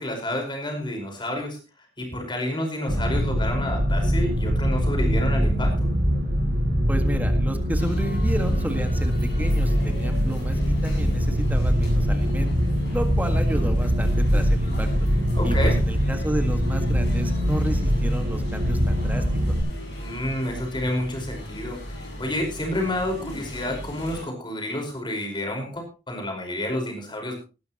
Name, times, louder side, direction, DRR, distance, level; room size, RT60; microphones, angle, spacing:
voice 1, 0.0-1.6 2.0-5.9 15.4-15.8 20.0-27.4, left 1 dB, 25° left, 2 dB, 5.0 m, -29 dB
sound 1, 2.9-19.6, equal, 75° right, 5.3 m, -23 dB
voice 2, 6.9-12.5 12.9-14.9 15.4-19.2, right 1 dB, 10° right, 6 dB, 1.8 m, -32 dB
sound 2, 7.8-24.2, equal, 70° left, 7.3 m, -37 dB
18.5 x 12.0 x 3.0 m, 0.31 s
head